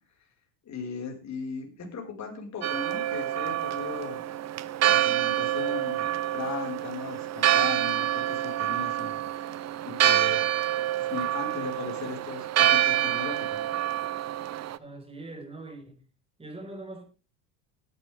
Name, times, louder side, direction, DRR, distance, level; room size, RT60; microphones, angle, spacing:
voice 1, 0.7-4.3 4.8-9.3 9.9-10.4 10.7-13.6, left 5 dB, 35° left, 5.4 m, -37 dB
Church bell, 2.6-14.8, right 12 dB, 35° right, 0.9 m, -27 dB
voice 2, 14.8-16.0 16.4-17.0, right 2 dB, 10° right, 5.0 m, -42 dB
18.0 x 11.0 x 3.6 m
hypercardioid pair, 90°, 47 cm